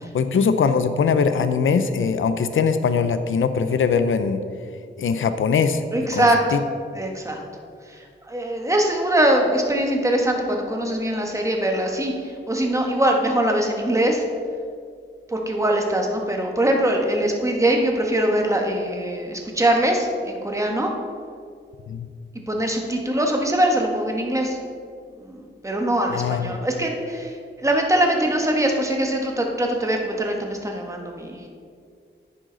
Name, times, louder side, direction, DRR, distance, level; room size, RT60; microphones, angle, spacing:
voice 1, 0.1-4.4 5.0-5.8 6.1-6.6 21.9-22.1 26.1-26.5, left 6 dB, 90° left, 10 dB, 0.5 m, -21 dB
voice 2, 5.9-6.6 6.9-7.4 7.9-14.2 15.3-20.9 22.5-24.6 25.2-31.4, right 1 dB, 15° right, 1 dB, 1.4 m, -22 dB
10.0 x 9.7 x 3.9 m, 2.2 s
wide cardioid pair, 115°, 20 cm